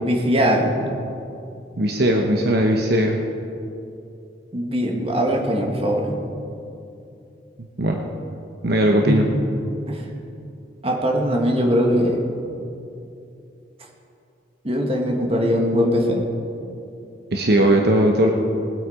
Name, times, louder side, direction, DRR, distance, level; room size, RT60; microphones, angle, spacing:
voice 1, 0.0-0.7 4.5-6.1 9.0-9.2 9.9-10.1 10.8-12.2 14.6-16.2, equal, 35° right, 1 dB, 1.6 m, -21 dB
voice 2, 1.8-3.2 7.8-8.0 8.6-9.2 17.3-18.3, right 1 dB, 60° right, 2 dB, 1.0 m, -18 dB
20.0 x 8.3 x 5.0 m, 2.7 s
head